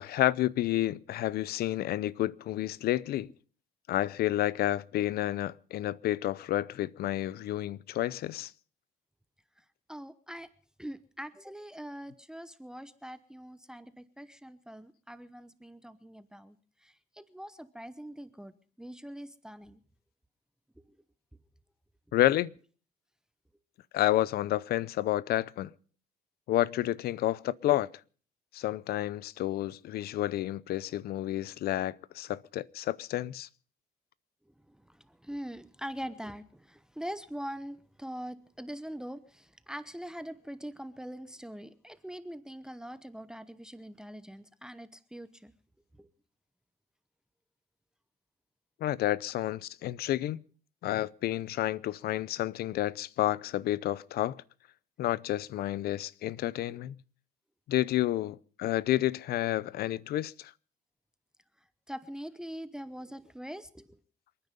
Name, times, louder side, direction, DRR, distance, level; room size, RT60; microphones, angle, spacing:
voice 1, 0.0-3.3 3.9-8.5 22.1-22.5 23.9-25.7 26.5-27.9 28.5-33.5 48.8-50.4 50.8-54.4 55.0-57.0 57.7-60.5, left 14 dB, 65° left, 0.7 m, -30 dB
voice 2, 9.6-10.5 10.8-16.6 16.8-18.5 18.8-19.8 34.5-45.5 46.0-46.1 56.7-56.8 61.9-64.0, equal, 5° right, 0.9 m, -43 dB
27.5 x 9.8 x 5.3 m
cardioid pair, 110°, 17 cm